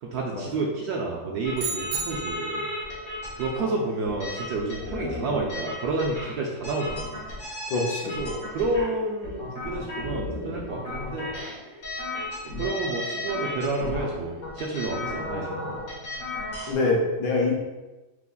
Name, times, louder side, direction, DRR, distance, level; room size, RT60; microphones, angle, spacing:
voice 1, 0.0-2.7 3.4-7.2 8.0-11.4 12.5-15.7, right 3 dB, 75° right, -2 dB, 0.9 m, -30 dB
sound 1, 1.4-16.7, left 1 dB, 45° left, 1.6 m, -35 dB
sound 2, 1.6-2.7, right 5 dB, 90° right, 1.4 m, -32 dB
voice 2, 7.7-8.1 16.7-17.5, left 3 dB, 65° left, -1 dB, 1.3 m, -24 dB
6.0 x 3.0 x 2.4 m, 1.1 s
omnidirectional pair, 2.0 m